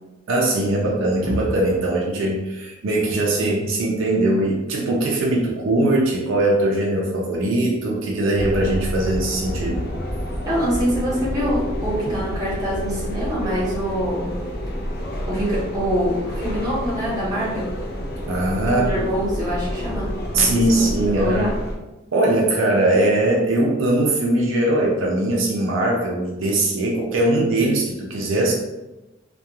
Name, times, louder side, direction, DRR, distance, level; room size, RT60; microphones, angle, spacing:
voice 1, 0.3-9.9 18.3-19.0 20.3-21.5 22.1-28.5, right 1 dB, 75° right, -2 dB, 0.4 m, -20 dB
sound 1, 8.3-21.7, equal, 50° left, 0.4 m, -29 dB
voice 2, 10.5-14.3 15.3-17.7 18.7-20.8 21.1-21.5, equal, 20° right, -7 dB, 1.0 m, -25 dB
2.3 x 2.3 x 2.8 m, 1.0 s
head